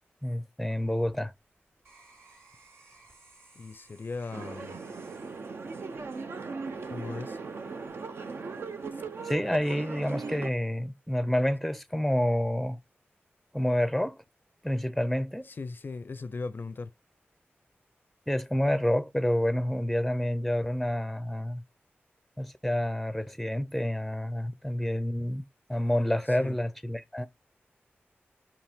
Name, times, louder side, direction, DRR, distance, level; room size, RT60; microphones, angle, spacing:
voice 1, 0.2-1.3 9.2-12.8 13.5-14.2 14.6-15.5 18.3-21.6 22.4-25.4 25.7-27.3, left 1 dB, ahead, 0.6 m, -28 dB
sound 1, 1.1-6.9 7.4-7.9, right 3 dB, 90° right, 2.9 m, -59 dB
voice 2, 3.6-4.8 6.8-7.4 15.4-16.9 26.3-26.6, left 3 dB, 55° left, 0.5 m, -38 dB
sound 2, 4.3-10.5, right 4 dB, 70° right, 0.7 m, -38 dB
5.7 x 5.3 x 3.4 m
wide cardioid pair, 95°, 4 cm